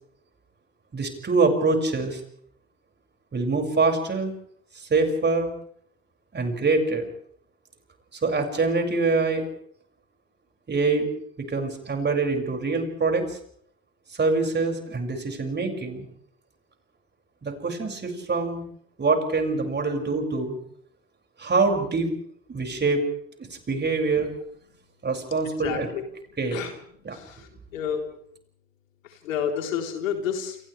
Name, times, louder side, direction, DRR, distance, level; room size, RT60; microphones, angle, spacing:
voice 1, 0.9-2.2 3.3-4.3 4.7-5.5 6.3-7.1 8.1-9.5 10.7-11.1 11.4-13.4 14.1-16.1 17.4-18.6 19.0-20.6 21.4-22.1 22.5-23.1 23.4-24.3 25.0-25.9 26.4-26.6 27.0-27.2, right 3 dB, 25° right, 4 dB, 6.4 m, -24 dB
voice 2, 25.6-26.0 26.5-26.7 27.1-28.0 29.0-30.6, left 8 dB, 75° left, 3 dB, 4.0 m, -30 dB
29.5 x 27.5 x 3.4 m, 0.65 s
figure-of-eight pair, 65°, 39 cm